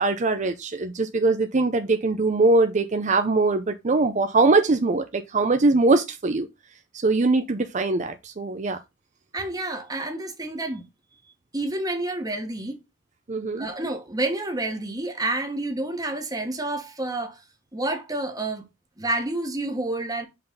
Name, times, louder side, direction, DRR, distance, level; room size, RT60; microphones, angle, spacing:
voice 1, 0.0-6.5 7.0-8.8 13.3-13.7, right 3 dB, 40° right, 0.6 m, -22 dB
voice 2, 9.3-10.8 11.5-12.8 13.6-17.4 17.7-18.6 19.0-20.3, right 2 dB, 20° right, 1.4 m, -29 dB
5.5 x 4.0 x 5.5 m
head